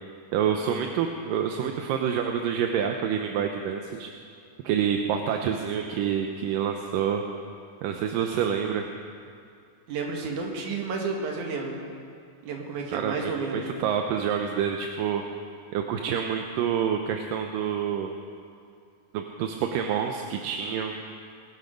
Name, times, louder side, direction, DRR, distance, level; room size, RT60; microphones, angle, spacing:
voice 1, 0.3-4.1 4.6-7.2 7.8-8.8 12.9-15.2 15.7-18.1 19.1-21.1, right 8 dB, 80° right, 4 dB, 2.4 m, -27 dB
voice 2, 9.9-11.8 12.4-13.7, right 4 dB, 65° right, 1 dB, 3.1 m, -31 dB
21.0 x 12.5 x 5.2 m, 2.4 s
omnidirectional pair, 3.9 m